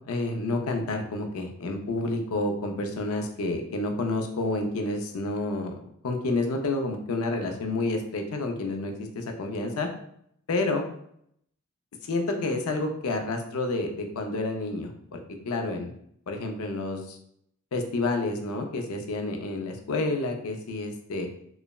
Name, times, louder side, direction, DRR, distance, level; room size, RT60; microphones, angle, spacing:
voice 1, 0.1-5.7 6.0-9.9 10.5-10.8 12.0-15.9 16.3-17.2 17.7-21.3, left 2 dB, 75° left, 4 dB, 0.4 m, -29 dB
3.1 x 2.0 x 2.3 m, 0.69 s
head